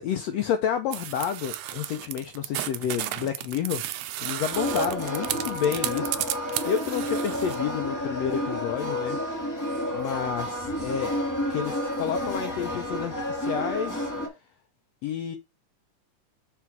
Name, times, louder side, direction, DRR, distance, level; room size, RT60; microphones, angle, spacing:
voice 1, 0.0-3.9 4.2-9.2 9.9-11.2 11.5-14.1 15.0-15.4, left 9 dB, 85° left, 1.5 m, -30 dB
sound 1, 0.9-7.6, right 14 dB, 80° right, 1.8 m, -33 dB
sound 2, 4.5-14.3, left 1 dB, 15° left, 0.6 m, -30 dB
6.0 x 4.8 x 4.5 m
omnidirectional pair, 3.7 m